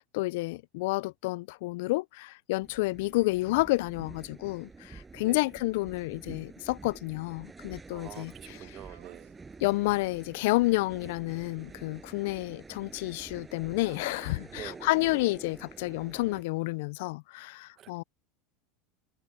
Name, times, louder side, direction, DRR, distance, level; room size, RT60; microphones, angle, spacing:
voice 1, 0.0-8.6 9.6-18.0, left 21 dB, 75° left, 0.3 m, -30 dB
sound 1, 2.6-16.4, right 4 dB, 15° right, 5.8 m, -48 dB
voice 2, 5.1-5.4 7.9-9.4 14.5-15.0 17.8-18.0, right 12 dB, 40° right, 1.2 m, -46 dB
sound 2, 7.6-16.8, right 16 dB, 85° right, 2.6 m, -60 dB
supercardioid pair, 120°, 0 cm